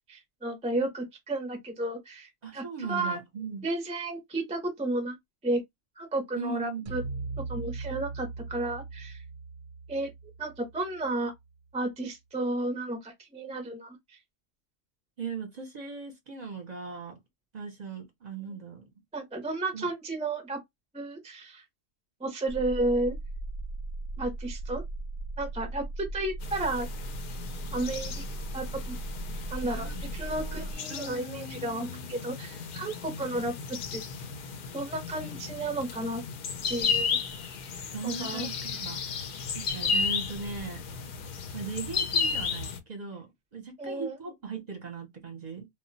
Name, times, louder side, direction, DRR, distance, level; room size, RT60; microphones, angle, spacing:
voice 1, 0.1-3.2 3.6-5.2 5.4-5.6 6.0-7.0 7.5-9.2 9.9-10.1 10.4-11.3 11.7-14.2 19.1-20.6 20.9-21.6 22.2-23.2 24.2-24.8 25.4-26.9 27.7-28.2 28.5-29.0 29.5-34.0 34.7-36.2 36.7-37.2 38.0-38.5 43.8-44.2, right 2 dB, 10° right, 0.4 m, -32 dB
voice 2, 2.4-3.7 6.4-6.9 15.2-17.2 17.5-18.8 19.7-19.9 29.7-32.0 37.9-39.0 39.4-40.8 41.5-45.7, right 5 dB, 45° right, 0.7 m, -39 dB
sound 1, 6.9-11.2, right 4 dB, 90° right, 0.9 m, -39 dB
sound 2, 22.5-30.8, right 2 dB, 85° left, 0.9 m, -37 dB
sound 3, 26.4-42.8, left 5 dB, 60° left, 0.6 m, -34 dB
2.2 x 2.1 x 3.8 m
omnidirectional pair, 1.2 m